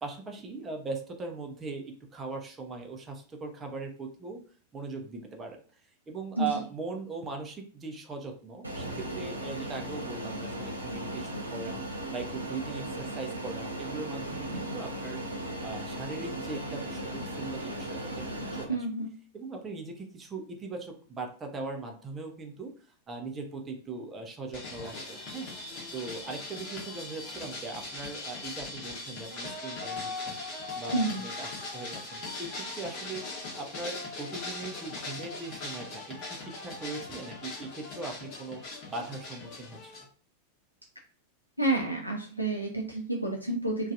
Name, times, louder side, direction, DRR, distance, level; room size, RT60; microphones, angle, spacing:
voice 1, 0.0-4.4 4.7-5.6 6.1-11.8 12.1-15.2 15.6-18.9 19.3-25.5 25.9-30.4 30.7-33.2 33.5-38.6 38.9-39.9, right 3 dB, 20° right, 2 dB, 0.5 m, -40 dB
Fixed-wing aircraft airplane, 8.6-18.6, right 1 dB, 85° right, 0.6 m, -37 dB
voice 2, 14.5-14.8 18.7-19.2 30.9-31.3 41.6-43.9, right 2 dB, 90° left, 0 dB, 0.4 m, -30 dB
sound 1, 24.5-40.0, left 3 dB, 40° left, 0.9 m, -40 dB
2.5 x 2.3 x 2.6 m, 0.43 s
figure-of-eight pair, 90°, 0 cm